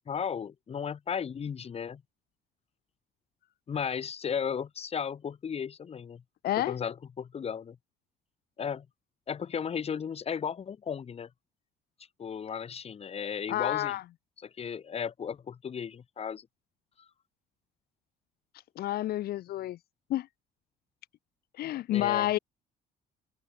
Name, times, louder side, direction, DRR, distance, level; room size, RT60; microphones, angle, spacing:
voice 1, 0.1-2.0 3.7-6.2 6.6-7.8 8.6-8.9 9.3-11.3 12.2-14.0 14.4-16.5 21.9-22.3, left 7 dB, 35° left, 1.7 m, -35 dB
voice 2, 6.4-6.7 13.5-14.0 18.8-19.8 20.1-20.3 21.6-22.4, left 14 dB, 65° left, 1.1 m, -29 dB
cardioid pair, 110°, 17 cm